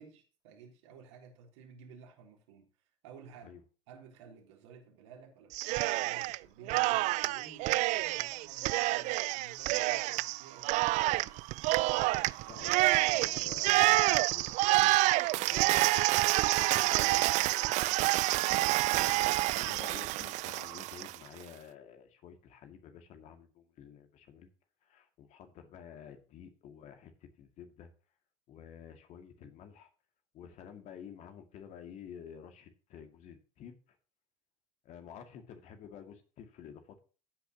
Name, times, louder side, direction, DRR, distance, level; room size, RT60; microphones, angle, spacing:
voice 1, 0.0-2.7 3.0-3.6 3.9-11.4, right 6 dB, 70° right, 3.6 m, -54 dB
Cheering, 5.5-6.4 6.7-21.2, right 20 dB, 50° right, 0.4 m, -28 dB
voice 2, 12.5-17.5 18.6-24.5 24.8-27.9 28.5-29.9 30.3-34.0 34.8-37.0, left 8 dB, 50° left, 2.2 m, -51 dB
15.0 x 8.8 x 2.9 m
figure-of-eight pair, 70°, 15 cm